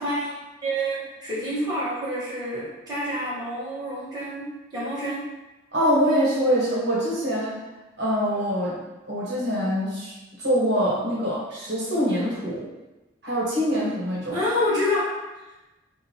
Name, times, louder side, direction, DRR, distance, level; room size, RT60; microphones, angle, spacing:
voice 1, 0.0-0.3 0.6-5.3 14.3-15.1, equal, 20° right, -10 dB, 1.2 m, -27 dB
voice 2, 5.7-7.6 8.0-8.8 9.0-10.1 10.4-12.6 13.2-14.4, equal, 60° right, -7 dB, 1.2 m, -24 dB
4.8 x 2.6 x 2.8 m, 1.0 s
head